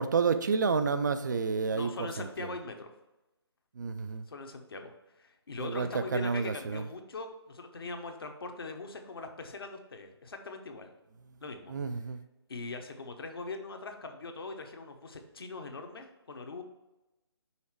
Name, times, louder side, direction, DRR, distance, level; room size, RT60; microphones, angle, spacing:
voice 1, 0.0-2.5 3.8-4.2 5.6-6.8 11.7-12.2, right 5 dB, 45° right, 10 dB, 0.4 m, -30 dB
voice 2, 1.7-2.9 4.3-10.9 11.4-11.7 12.5-16.6, left 3 dB, 60° left, 5 dB, 0.9 m, -41 dB
5.7 x 3.9 x 4.5 m, 0.99 s
figure-of-eight pair, 145°, 14 cm